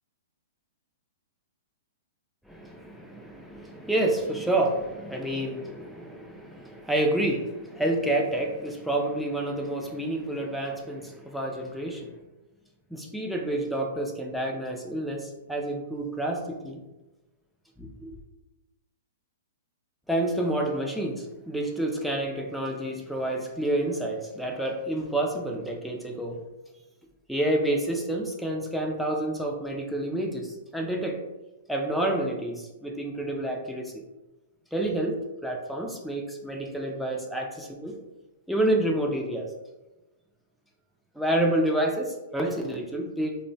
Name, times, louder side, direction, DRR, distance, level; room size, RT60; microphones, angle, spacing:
voice 1, 2.5-12.1 12.9-16.8 17.8-18.2 20.1-26.4 27.3-31.2 31.7-34.1 34.7-38.0 38.5-39.5 41.2-43.4, right 1 dB, ahead, 0 dB, 0.4 m, -29 dB
2.9 x 2.1 x 2.6 m, 1.1 s
hypercardioid pair, 120°, 0 cm